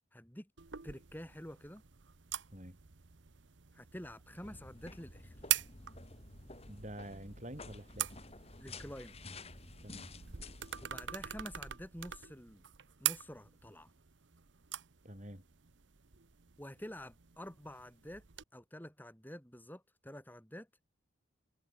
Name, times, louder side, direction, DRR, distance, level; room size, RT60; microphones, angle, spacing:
voice 1, 0.1-0.5 0.8-1.8 3.7-5.4 8.6-9.2 10.8-12.6 13.0-13.9 16.6-18.2 18.5-20.7, equal, 10° left, 2.8 m, -48 dB
sound 1, 0.6-18.4, right 13 dB, 70° right, 1.0 m, -44 dB
sound 2, 4.4-10.9, left 2 dB, 30° left, 3.7 m, -51 dB
voice 2, 6.7-8.1 9.8-10.1 15.0-15.4, right 1 dB, 35° right, 5.5 m, -47 dB
head